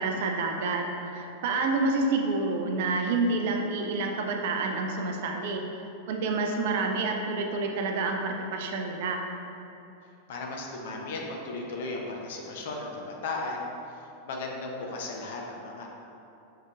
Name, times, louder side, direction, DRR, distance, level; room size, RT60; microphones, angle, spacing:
voice 1, 0.0-5.6 6.1-9.2, right 3 dB, 55° right, 3 dB, 0.4 m, -28 dB
voice 2, 10.3-15.9, left 2 dB, 55° left, 0 dB, 0.6 m, -36 dB
5.4 x 3.5 x 2.4 m, 2.8 s
figure-of-eight pair, 90°, 0 cm